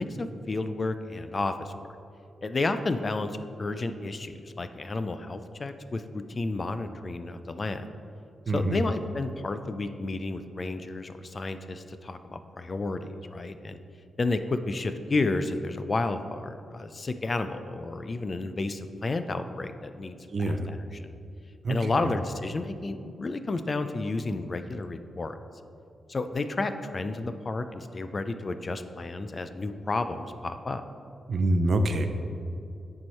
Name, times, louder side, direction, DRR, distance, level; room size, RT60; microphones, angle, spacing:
voice 1, 0.0-1.7 2.4-7.9 8.5-13.8 14.2-21.1 21.7-25.4 26.1-30.8, left 3 dB, 40° left, 9 dB, 0.4 m, -31 dB
voice 2, 8.5-8.8 20.3-20.7 21.6-22.1 31.3-32.1, right 1 dB, 55° right, 7 dB, 0.6 m, -26 dB
9.3 x 4.6 x 4.4 m, 2.5 s
cardioid pair, 85°, 0 cm